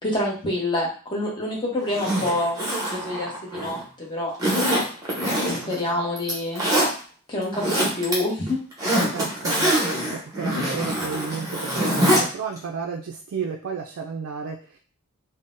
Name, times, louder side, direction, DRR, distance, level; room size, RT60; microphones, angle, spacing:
voice 1, 0.0-2.6 2.9-4.3 5.3-6.6 7.3-8.6, left 1 dB, 20° left, -3 dB, 0.8 m, -27 dB
Zipper (clothing), 1.9-3.8 4.4-5.8 6.2-6.9 7.4-8.1 8.5-12.2 12.6-12.7, equal, 15° right, 0.8 m, -24 dB
voice 2, 5.5-6.0 8.8-14.8, right 6 dB, 65° right, 1 dB, 0.3 m, -33 dB
3.7 x 2.0 x 2.5 m, 0.40 s
head